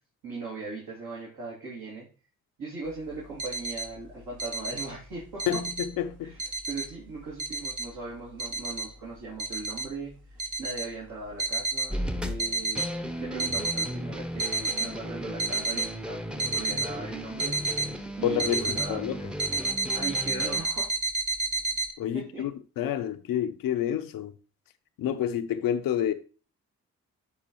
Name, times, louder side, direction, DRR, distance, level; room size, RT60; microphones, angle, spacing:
voice 1, 0.2-2.1 2.6-5.6 6.2-17.8 18.2-19.1 19.9-20.9 22.1-22.5, right 3 dB, 80° right, 2.4 m, -39 dB
sound 1, 3.2-3.9 4.3-4.9 5.2-5.9 6.4-6.9 7.4-7.9 8.4-8.9 9.4-9.9 10.4-10.9 11.4-11.9 12.4-12.9 13.3-13.9 14.4-14.9 15.4-15.9 16.4-16.9 17.4-17.9 18.4-18.9 19.4-21.9, right 3 dB, 60° right, 1.1 m, -30 dB
voice 2, 5.5-6.3 18.2-19.2 22.0-22.5 22.8-24.3 25.0-26.1, left 10 dB, 80° left, 0.6 m, -28 dB
sound 2, 11.9-20.6, equal, 5° right, 0.7 m, -36 dB
11.5 x 4.0 x 3.0 m
supercardioid pair, 45°, 34 cm